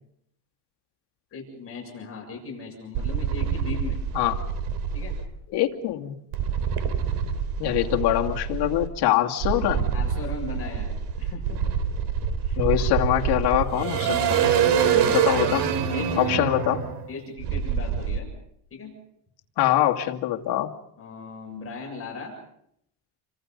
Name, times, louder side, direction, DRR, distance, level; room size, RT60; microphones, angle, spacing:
voice 1, 1.3-4.0 4.9-5.1 7.6-7.8 9.9-11.7 12.4-12.6 14.7-15.2 15.9-16.5 17.1-18.3 18.7-18.9 21.0-22.3, left 4 dB, 30° left, 0 dB, 7.4 m, -38 dB
sound 1, 2.9-5.2 6.3-8.9 9.4-18.2, right 7 dB, 70° right, 3.6 m, -26 dB
voice 2, 5.5-6.2 7.6-9.9 12.6-14.4 15.1-15.7 16.2-16.8 19.6-20.7, left 13 dB, 65° left, 2 dB, 2.4 m, -23 dB
29.0 x 25.5 x 5.4 m, 0.72 s
cardioid pair, 135°, 42 cm